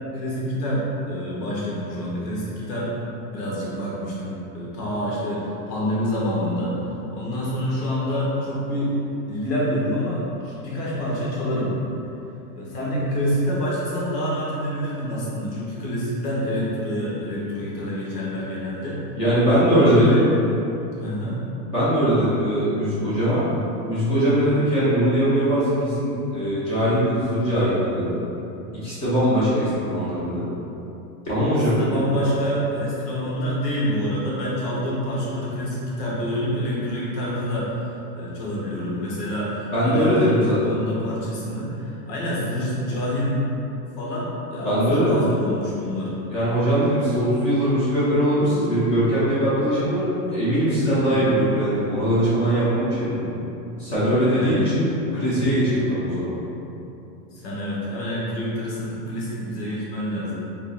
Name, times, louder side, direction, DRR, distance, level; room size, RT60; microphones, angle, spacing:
voice 1, 0.1-2.9 3.3-8.9 9.3-11.7 12.5-19.0 19.5-20.3 20.9-21.4 31.7-37.7 38.1-43.4 44.0-46.1 50.8-51.3 54.3-54.7 57.3-60.3, equal, 80° left, -6 dB, 1.4 m, -27 dB
voice 2, 19.1-20.2 21.7-23.4 23.9-28.2 28.8-30.4 31.2-31.9 39.7-40.7 44.6-45.2 46.3-53.3 53.8-54.9 55.1-56.3, equal, 25° left, -11 dB, 1.0 m, -21 dB
3.8 x 3.6 x 2.4 m, 2.9 s
supercardioid pair, 180°, 48 cm